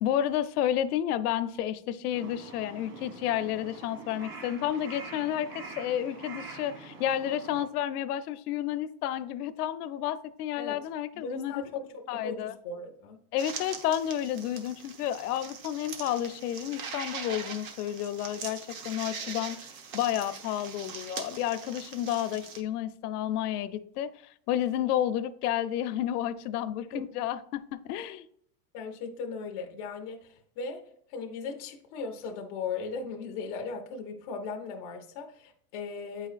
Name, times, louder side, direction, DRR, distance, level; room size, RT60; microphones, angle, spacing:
voice 1, 0.0-11.6 12.1-12.5 13.3-19.6 19.9-28.3, left 11 dB, 80° left, 13 dB, 0.6 m, -31 dB
Crow, 2.1-7.6, right 3 dB, 85° right, 1.8 m, -45 dB
voice 2, 11.1-13.2 26.9-27.0 28.7-30.8 31.1-36.3, left 4 dB, 25° left, 2 dB, 0.3 m, -37 dB
sound 1, 13.4-22.6, right 5 dB, 65° right, 1.2 m, -42 dB
8.6 x 4.9 x 2.4 m, 0.66 s
supercardioid pair, 165°, 46 cm